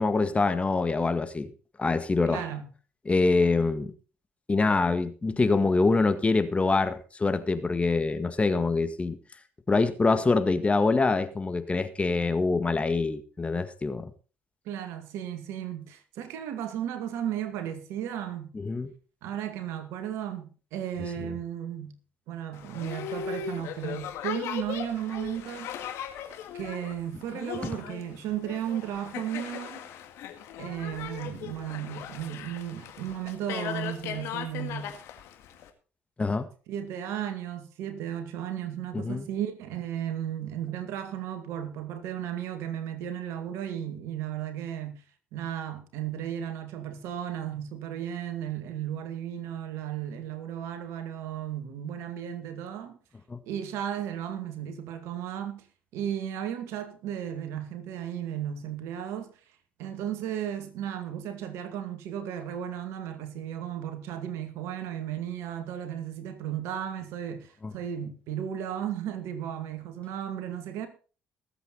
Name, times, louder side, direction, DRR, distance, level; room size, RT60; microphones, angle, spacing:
voice 1, 0.0-1.5 1.8-2.4 3.1-3.9 4.5-9.2 9.7-14.1 18.5-18.9 36.2-36.5 38.9-39.3 53.3-53.4 67.6-67.7, left 3 dB, 25° left, 1.8 m, -25 dB
voice 2, 2.2-2.7 14.7-18.5 19.2-22.0 22.3-25.8 26.5-29.8 30.6-35.0 36.7-45.0 45.3-53.0 53.4-55.6 55.9-59.3 59.8-70.9, right 10 dB, 70° right, 2.2 m, -35 dB
Boat Water vehicle, 22.5-35.7, left 8 dB, 70° left, 2.0 m, -38 dB
20.0 x 8.2 x 4.1 m
hypercardioid pair, 50°, 5 cm